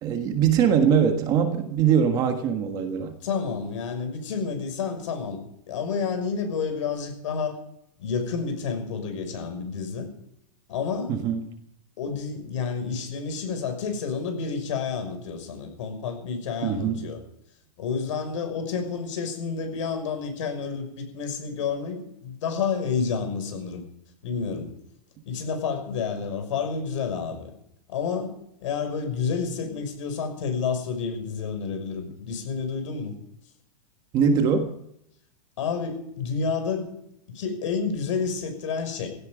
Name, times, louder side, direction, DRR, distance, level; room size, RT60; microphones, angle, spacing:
voice 1, 0.0-3.1 11.1-11.4 16.6-17.1 34.1-34.7, right 7 dB, 20° right, 6 dB, 1.4 m, -22 dB
voice 2, 3.2-5.4 5.7-7.5 8.0-10.1 10.7-11.1 12.0-17.2 17.8-23.8 24.2-24.7 25.3-27.5 27.9-33.1 35.6-36.9 37.3-39.1, left 5 dB, 60° left, 6 dB, 6.0 m, -29 dB
16.5 x 16.5 x 5.1 m, 0.75 s
supercardioid pair, 175°, 18 cm